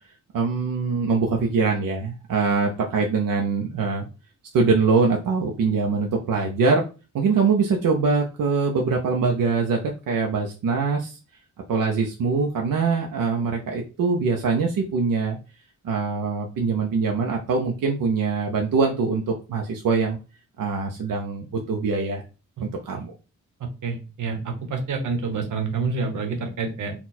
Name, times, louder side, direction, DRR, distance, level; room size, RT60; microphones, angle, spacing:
voice 1, 0.3-4.1 4.5-6.8 7.1-11.2 11.7-15.4 15.8-19.2 19.5-20.2 20.6-22.2 22.6-23.1, right 4 dB, 90° right, 1 dB, 0.8 m, -23 dB
voice 2, 23.8-26.9, right 4 dB, 70° right, 4 dB, 1.1 m, -28 dB
4.2 x 2.3 x 4.2 m, 0.31 s
wide cardioid pair, 170°, 32 cm